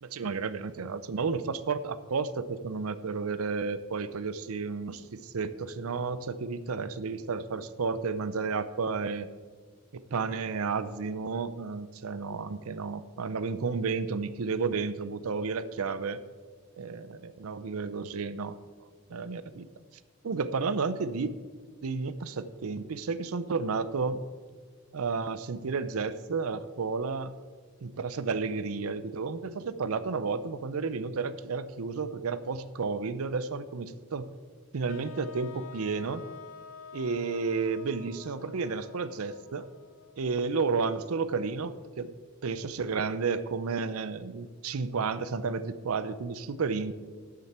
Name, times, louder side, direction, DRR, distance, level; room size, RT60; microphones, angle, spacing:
voice 1, 0.0-9.3 9.9-16.2 16.8-18.6 19.1-19.7 20.2-21.3 21.8-24.2 24.9-27.3 27.8-34.3 34.7-36.2 36.9-39.7 40.2-42.1 42.4-46.9, right 4 dB, 85° right, 14 dB, 0.5 m, -32 dB
sound 1, 34.9-40.9, left 6 dB, 75° left, 0.6 m, -49 dB
12.5 x 7.6 x 4.3 m, 1.5 s
head